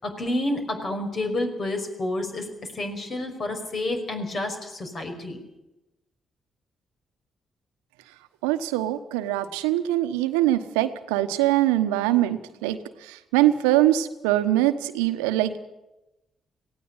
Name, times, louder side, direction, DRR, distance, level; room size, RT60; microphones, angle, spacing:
voice 1, 0.0-2.5 2.7-5.4, left 1 dB, 50° left, 5 dB, 5.5 m, -29 dB
voice 2, 8.4-15.6, right 14 dB, 85° right, 10 dB, 1.0 m, -23 dB
18.5 x 16.5 x 9.9 m, 0.96 s
hypercardioid pair, 45°, 0 cm